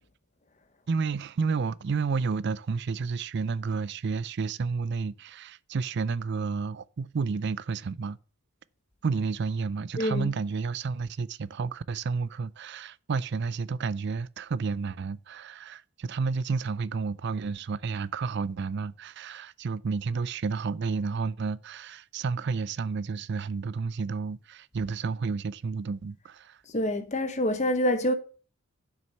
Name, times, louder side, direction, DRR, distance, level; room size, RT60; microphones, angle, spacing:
voice 1, 0.9-8.2 9.0-26.6, right 4 dB, 50° right, 0.4 m, -31 dB
voice 2, 10.0-10.3 26.7-28.1, left 1 dB, 30° left, 0.9 m, -26 dB
7.7 x 6.1 x 5.4 m
head